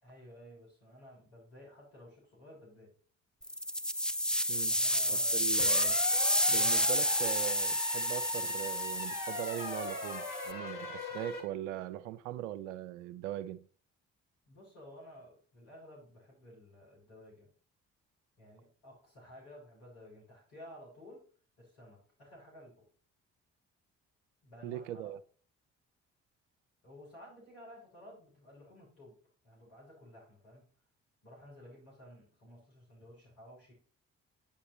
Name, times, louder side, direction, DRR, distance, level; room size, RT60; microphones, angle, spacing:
voice 1, 0.0-2.9 4.7-5.4 6.5-6.7 14.5-17.5 18.4-21.3 21.6-22.9 24.4-25.1 26.8-29.2 29.4-30.7 31.2-33.7, equal, 80° left, 3.4 m, -54 dB
sound 1, 3.4-10.5, equal, ahead, 0.6 m, -30 dB
voice 2, 5.1-6.0 6.5-13.7 24.6-25.2, right 12 dB, 85° right, 0.5 m, -40 dB
sound 2, 5.6-11.4, left 3 dB, 65° left, 2.5 m, -41 dB
8.7 x 8.6 x 3.0 m
hypercardioid pair, 45°, 35 cm